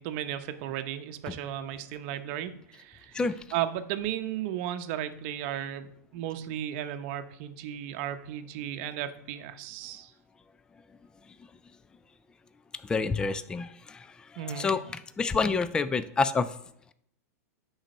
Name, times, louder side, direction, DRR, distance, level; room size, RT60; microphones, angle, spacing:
voice 1, 0.0-3.2 3.5-10.1 14.4-14.7, right 11 dB, 50° right, 9 dB, 0.8 m, -35 dB
voice 2, 12.8-14.1 14.3-14.8 15.2-16.5, left 4 dB, 10° left, 13 dB, 0.3 m, -28 dB
8.9 x 4.1 x 5.3 m, 0.71 s
hypercardioid pair, 130°, 9 cm